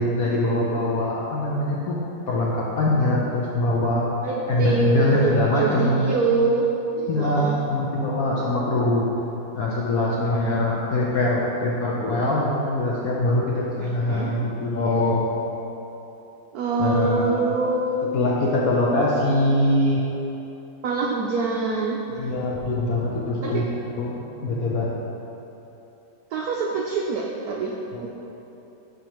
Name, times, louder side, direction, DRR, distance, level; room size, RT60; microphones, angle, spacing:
voice 1, 0.0-2.0 2.3-4.0 4.5-6.2 7.0-9.1 9.5-15.2 16.8-17.5 18.1-20.0 22.1-23.7 24.0-24.1 24.4-24.9 27.9-28.1, left 1 dB, 65° left, -4 dB, 0.9 m, -23 dB
voice 2, 4.2-6.7 7.2-7.6 10.2-10.6 13.8-14.3 16.5-18.1 20.8-22.0 23.4-23.7 26.3-27.7 28.0-28.1, right 3 dB, 80° right, -2 dB, 0.8 m, -25 dB
6.7 x 5.6 x 3.0 m, 3.0 s
omnidirectional pair, 2.1 m